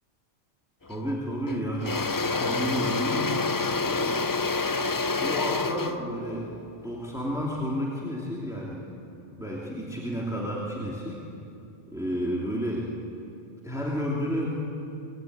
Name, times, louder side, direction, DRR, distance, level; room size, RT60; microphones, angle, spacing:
voice 1, 0.8-4.2 4.8-4.9 5.2-6.5 6.8-8.8 9.4-11.2 11.9-12.9 13.6-14.5, equal, 5° right, -4 dB, 2.9 m, -31 dB
Engine / Drill, 0.9-1.1 1.5-7.6, left 3 dB, 30° left, 0.4 m, -28 dB
25.5 x 20.5 x 9.4 m, 2.8 s
omnidirectional pair, 1.1 m